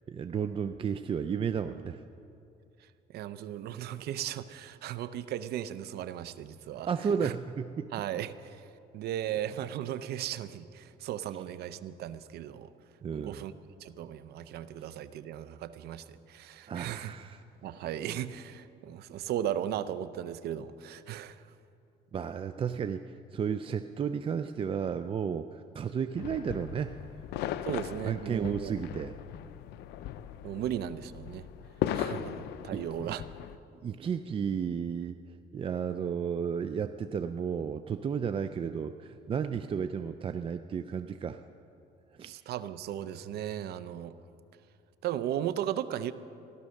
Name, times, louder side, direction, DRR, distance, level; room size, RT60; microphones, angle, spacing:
voice 1, 0.1-2.0 6.9-7.9 13.0-13.4 16.7-17.4 22.1-26.9 28.0-29.2 32.7-33.2 33.8-35.2 35.5-41.4 42.2-42.3, right 7 dB, 30° right, 9 dB, 0.4 m, -33 dB
voice 2, 3.1-6.9 7.2-7.3 7.9-8.7 8.9-12.7 13.1-13.5 13.8-17.1 17.6-21.5 27.7-28.8 30.4-31.5 31.9-33.2 42.2-44.2 45.0-46.1, right 11 dB, 70° right, 14 dB, 0.7 m, -36 dB
sound 1, 26.2-33.6, left 11 dB, 80° left, 0.6 m, -38 dB
15.5 x 12.5 x 6.5 m, 2.6 s
cardioid pair, 110°, 17 cm